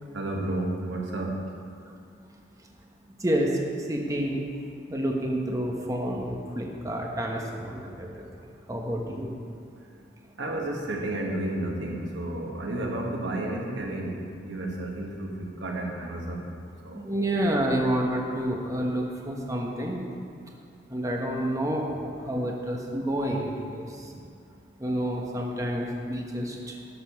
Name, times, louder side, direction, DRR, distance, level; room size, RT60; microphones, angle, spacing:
voice 1, 0.1-1.4 10.4-16.4 16.8-17.0 17.5-17.7, right 1 dB, 85° right, 0 dB, 1.7 m, -32 dB
voice 2, 3.9-4.4 4.9-8.1 8.7-9.3 17.0-20.0 20.9-23.8 24.8-26.5, right 1 dB, 20° right, 0 dB, 1.0 m, -29 dB
12.0 x 6.8 x 5.7 m, 2.5 s
head